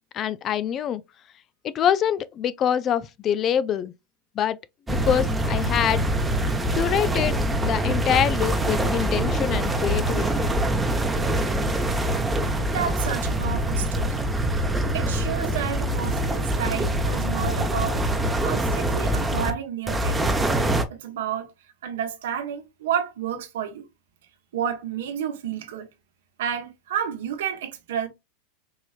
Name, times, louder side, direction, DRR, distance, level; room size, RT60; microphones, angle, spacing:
voice 1, 0.1-1.0 1.7-3.9 4.4-4.6 4.9-6.0 6.7-10.4, left 9 dB, 35° left, 0.4 m, -25 dB
sound 1, 4.9-19.5 19.9-20.8, right 1 dB, 10° right, 0.8 m, -24 dB
voice 2, 12.6-14.3 14.9-18.0 18.4-20.3 21.0-21.5 21.8-23.8 24.5-25.9 26.4-28.1, right 8 dB, 75° right, 1.0 m, -30 dB
4.6 x 3.0 x 2.4 m
hypercardioid pair, 105°, 0 cm